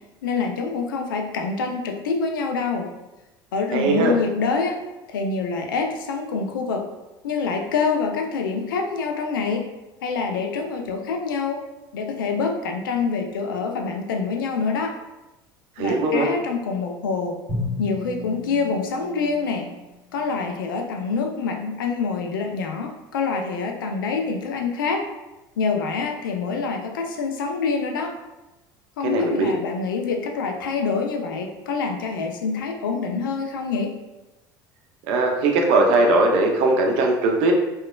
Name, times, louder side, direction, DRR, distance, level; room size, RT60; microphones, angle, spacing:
voice 1, 0.2-2.9 3.5-4.8 5.1-6.8 7.2-9.7 10.0-11.6 11.9-15.0 15.8-17.3 17.8-19.7 20.1-25.0 25.6-28.2 29.0-33.9, left 4 dB, 85° left, 3 dB, 0.4 m, -26 dB
voice 2, 3.7-4.1 15.8-16.3 29.0-29.5 35.1-37.5, right 2 dB, 65° right, 2 dB, 0.5 m, -19 dB
Drum, 17.5-20.4, left 2 dB, 10° right, 1.4 m, -34 dB
2.9 x 2.2 x 2.2 m, 1.0 s
hypercardioid pair, 85°, 11 cm